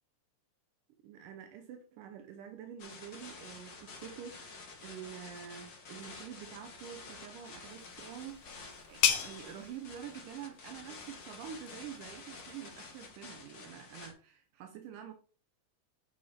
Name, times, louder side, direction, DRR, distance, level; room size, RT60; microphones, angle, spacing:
voice 1, 1.0-15.1, right 9 dB, 80° right, 2.0 m, -47 dB
sound 1, 2.8-14.1, left 4 dB, 60° left, 1.2 m, -50 dB
sound 2, 7.7-13.1, left 10 dB, 75° left, 2.8 m, -37 dB
7.6 x 5.6 x 4.3 m
omnidirectional pair, 4.6 m